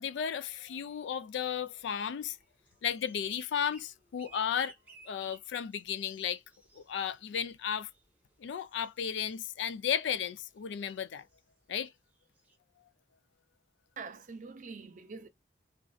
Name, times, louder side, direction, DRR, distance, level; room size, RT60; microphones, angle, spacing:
voice 1, 0.0-2.4 2.8-4.7 5.1-6.4 6.7-7.9 8.4-11.3 11.7-11.9, left 8 dB, 85° left, 0.3 m, -34 dB
sound 1, 0.7-10.0 10.3-11.5 11.8-11.9 12.2-12.6, right 3 dB, 10° right, 0.8 m, -60 dB
voice 2, 14.0-15.3, right 4 dB, 45° right, 0.5 m, -44 dB
3.1 x 2.5 x 2.3 m
head